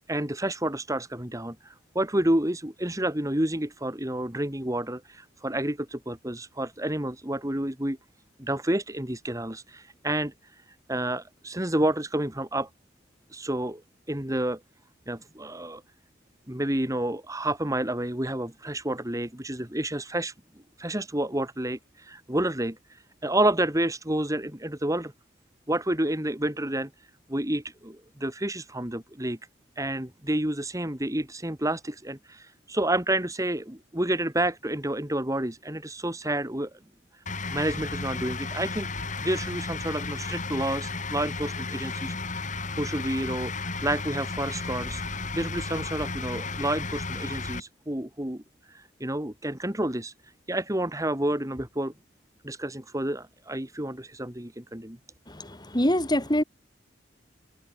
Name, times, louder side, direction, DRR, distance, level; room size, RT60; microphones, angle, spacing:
voice 1, 0.1-8.0 8.4-12.7 13.3-13.8 14.1-14.6 15.1-15.8 16.5-20.3 20.8-25.1 25.7-29.4 29.8-36.7 37.1-37.2 37.5-42.4 42.8-48.4 48.7-51.9 52.4-55.0, right 1 dB, 15° right, 2.4 m, -29 dB
sound 1, 37.3-47.6, left 3 dB, 40° left, 6.0 m, -33 dB
voice 2, 55.3-56.4, left 1 dB, 20° left, 4.8 m, -25 dB
head